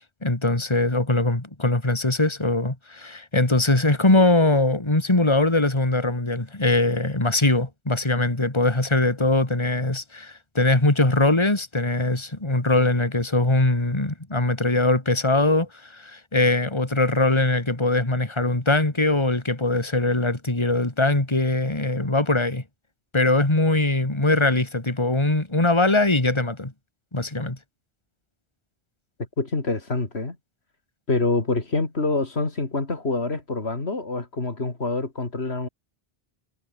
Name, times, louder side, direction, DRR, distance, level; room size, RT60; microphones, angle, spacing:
voice 1, 0.2-22.6 23.1-26.7 27.1-27.6, left 2 dB, 25° left, 2.7 m, -21 dB
voice 2, 29.4-30.4 31.1-35.7, left 3 dB, 80° left, 3.3 m, -26 dB
omnidirectional pair, 1.1 m